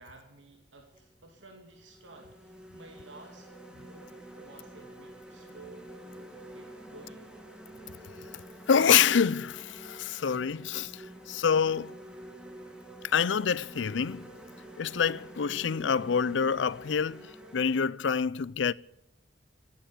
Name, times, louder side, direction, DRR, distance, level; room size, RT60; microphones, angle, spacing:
voice 1, 0.0-7.3, right 3 dB, 85° right, 2.5 m, -53 dB
sound 1, 0.9-1.1 1.7-17.8, right 1 dB, 5° right, 2.2 m, -48 dB
voice 2, 8.7-11.9 13.0-14.3 14.8-18.7, left 7 dB, 75° left, 0.5 m, -27 dB
16.0 x 10.0 x 8.7 m
head